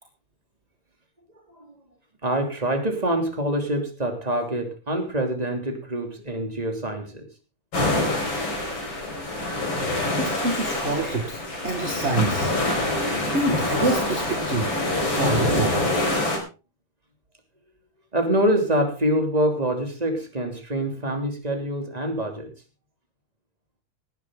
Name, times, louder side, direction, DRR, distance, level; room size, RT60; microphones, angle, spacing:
voice 1, 2.2-7.3 18.1-22.5, right 1 dB, 10° right, 5 dB, 2.6 m, -25 dB
sound 1, 7.7-16.4, left 2 dB, 35° left, 5.2 m, -25 dB
voice 2, 10.2-12.5 13.2-14.7 15.0-15.9, right 2 dB, 25° right, 3 dB, 1.5 m, -27 dB
18.5 x 12.0 x 3.8 m, 0.32 s
omnidirectional pair, 3.9 m